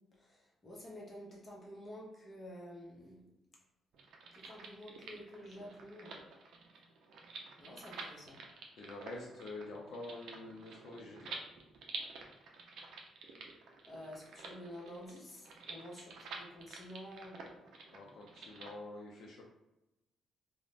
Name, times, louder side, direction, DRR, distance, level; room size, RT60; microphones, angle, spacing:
voice 1, 0.1-3.3 4.3-6.2 7.6-8.5 13.8-17.5, equal, 30° left, -3 dB, 0.8 m, -50 dB
sound 1, 3.9-18.7, right 4 dB, 75° right, 0.4 m, -50 dB
voice 2, 8.8-11.4 17.9-19.4, left 2 dB, 70° left, -1 dB, 0.4 m, -47 dB
2.4 x 2.0 x 3.2 m, 0.93 s
cardioid pair, 90°, 0 cm